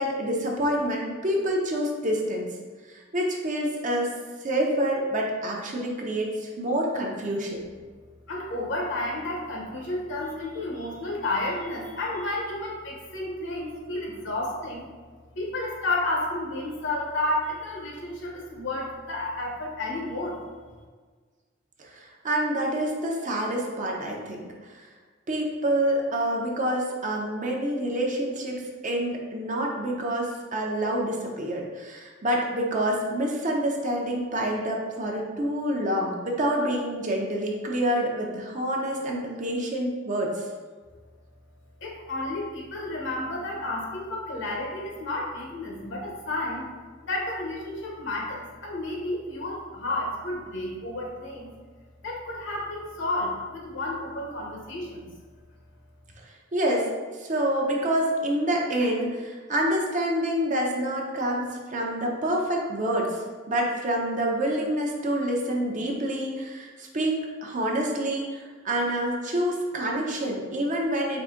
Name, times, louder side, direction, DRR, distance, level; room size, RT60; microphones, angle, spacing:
voice 1, 0.0-2.5 2.9-4.1 4.4-7.7 21.8-24.8 25.3-28.6 28.8-40.5 56.5-56.9 57.2-63.2 63.5-71.2, right 1 dB, 40° right, -1 dB, 0.6 m, -27 dB
voice 2, 8.3-14.8 15.4-20.4 41.8-46.6 47.0-51.5 52.0-55.1, left 2 dB, 65° left, -1 dB, 0.9 m, -31 dB
4.7 x 2.6 x 3.7 m, 1.5 s
head